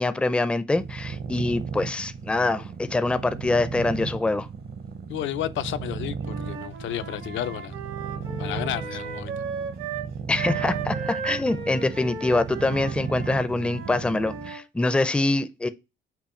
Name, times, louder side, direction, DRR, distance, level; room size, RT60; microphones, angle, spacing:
voice 1, 0.0-4.5 10.3-15.7, left 2 dB, 5° left, 0.4 m, -25 dB
sound 1, 0.7-14.5, right 6 dB, 55° right, 0.7 m, -35 dB
voice 2, 5.1-7.8 8.4-9.4, left 12 dB, 75° left, 0.5 m, -32 dB
Wind instrument woodwind instrument, 6.2-10.1 10.3-14.6, right 5 dB, 80° right, 1.5 m, -36 dB
5.7 x 2.2 x 4.2 m
cardioid pair, 90°, 20 cm